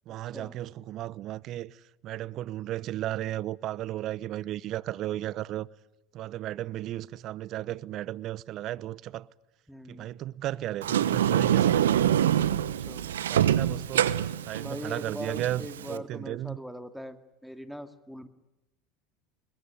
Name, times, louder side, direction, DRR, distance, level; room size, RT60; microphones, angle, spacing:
voice 1, 0.1-1.7 2.0-5.7 6.1-9.3 9.9-11.9 13.1-14.1 14.5-16.6, right 14 dB, 50° right, 0.8 m, -34 dB
voice 2, 9.7-10.2 12.9-13.1 14.6-17.2 17.4-18.3, equal, ahead, 2.1 m, -41 dB
Sliding door, 10.8-16.0, right 10 dB, 80° right, 1.0 m, -25 dB
21.5 x 20.0 x 10.0 m
hypercardioid pair, 85°, 0 cm